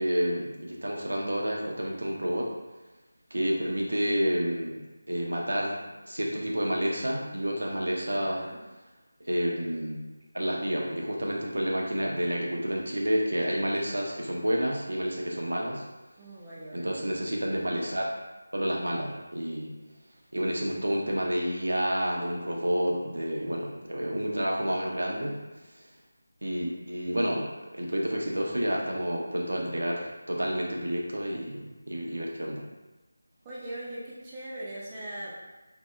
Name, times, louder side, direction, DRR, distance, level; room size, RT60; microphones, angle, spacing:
voice 1, 0.0-2.5 3.3-4.8 5.1-8.4 9.2-9.9 10.3-15.8 16.7-18.1 18.5-19.7 20.3-25.3 26.4-32.7, equal, 85° right, -2 dB, 0.6 m, -29 dB
voice 2, 8.0-8.6 16.2-17.0 33.4-35.3, right 1 dB, 15° right, -9 dB, 0.4 m, -40 dB
2.7 x 2.1 x 2.3 m, 1.1 s
figure-of-eight pair, 170°, 0 cm